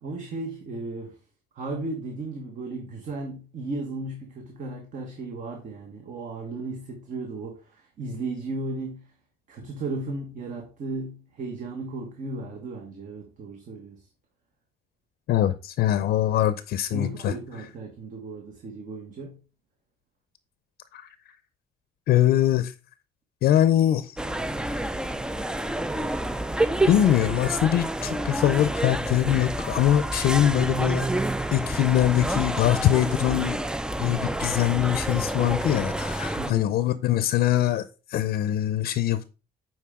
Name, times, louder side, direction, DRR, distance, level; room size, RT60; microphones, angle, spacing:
voice 1, 0.0-1.2 1.5-9.1 9.5-14.1 16.9-19.4 36.4-36.7, right 2 dB, 50° right, 1.3 m, -35 dB
voice 2, 15.3-17.3 20.9-21.1 22.1-22.7 23.4-24.2 24.6-24.8 26.9-31.2 31.5-33.6 34.0-39.2, left 12 dB, 70° left, 0.6 m, -23 dB
sound 1, 24.2-36.5, right 1 dB, 5° right, 0.3 m, -28 dB
8.7 x 4.5 x 3.6 m
cardioid pair, 110°, 17 cm